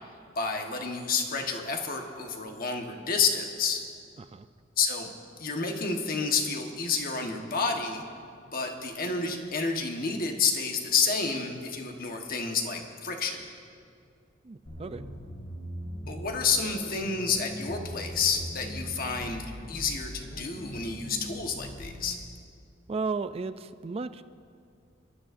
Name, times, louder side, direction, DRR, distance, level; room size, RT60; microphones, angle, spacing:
voice 1, 0.4-3.8 4.8-5.1 5.4-8.0 8.5-13.4 16.1-22.2, left 5 dB, 45° left, 3 dB, 1.3 m, -29 dB
voice 2, 4.2-4.5 14.4-15.0 22.9-24.2, right 4 dB, 30° right, 12 dB, 0.3 m, -34 dB
sound 1, 14.7-22.0, equal, 75° left, 3.9 m, -40 dB
24.0 x 13.0 x 2.6 m, 2.4 s
head